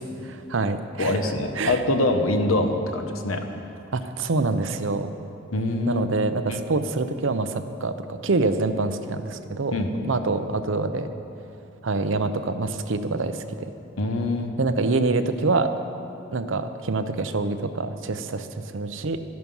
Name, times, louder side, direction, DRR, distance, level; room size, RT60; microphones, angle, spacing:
voice 1, 0.3-1.2 1.6-1.8 3.9-5.1 5.9-9.7 10.0-11.1 11.8-13.7 14.6-15.7 16.3-19.2, right 3 dB, 70° right, 9 dB, 0.7 m, -26 dB
voice 2, 1.0-3.4 5.5-6.1 6.5-6.6 9.7-9.9 14.0-14.5, left 2 dB, 90° left, 6 dB, 1.1 m, -24 dB
13.5 x 10.5 x 5.5 m, 2.7 s
head